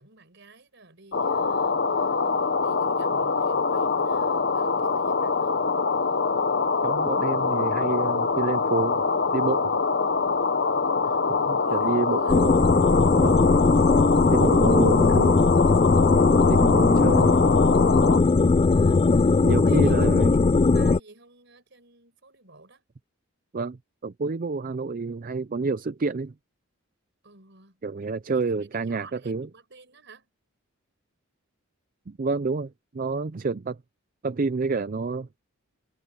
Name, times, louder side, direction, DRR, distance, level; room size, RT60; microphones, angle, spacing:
voice 1, 0.0-5.6 11.0-12.5 16.5-16.7 18.6-20.1 20.5-22.8 27.2-27.8 28.3-30.3, right 3 dB, 55° right, 5.7 m, -52 dB
sound 1, 1.1-18.2, left 4 dB, 55° left, 1.0 m, -24 dB
voice 2, 6.8-9.0 9.3-9.8 11.3-12.6 13.2-13.5 14.3-15.4 16.5-17.4 19.4-20.3 23.5-23.8 24.0-26.3 27.8-29.5 32.1-33.8 34.2-35.3, right 4 dB, 40° right, 0.4 m, -28 dB
sound 2, 12.3-21.0, left 3 dB, 25° left, 0.3 m, -19 dB
head